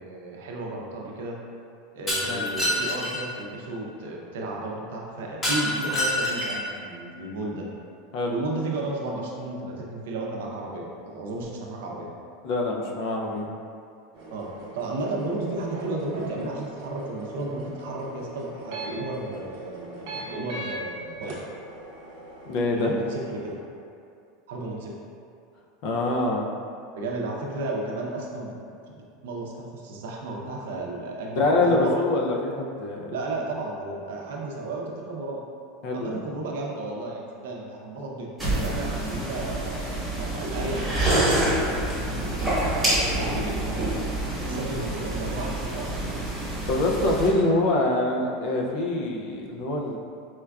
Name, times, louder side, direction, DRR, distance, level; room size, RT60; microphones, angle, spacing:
voice 1, 0.0-1.4 1.9-7.6 8.3-12.1 14.3-21.3 22.7-23.5 24.5-24.9 26.9-28.5 28.9-31.9 33.1-35.4 35.9-44.0 44.4-46.1, right 2 dB, 80° right, -1 dB, 0.5 m, -33 dB
Shatter, 2.1-3.2 5.4-6.7, left 1 dB, 15° left, 0.7 m, -26 dB
voice 2, 12.4-13.5 22.5-22.9 25.8-26.4 31.4-33.1 35.8-36.2 44.4-44.7 46.7-50.0, left 2 dB, 45° left, -1 dB, 0.4 m, -25 dB
sound 1, 14.1-20.7 21.2-23.6, right 1 dB, 55° right, 0.8 m, -41 dB
sound 2, 38.4-47.3, right 1 dB, ahead, 1.0 m, -27 dB
4.2 x 2.3 x 2.3 m, 2.4 s
supercardioid pair, 165°, 0 cm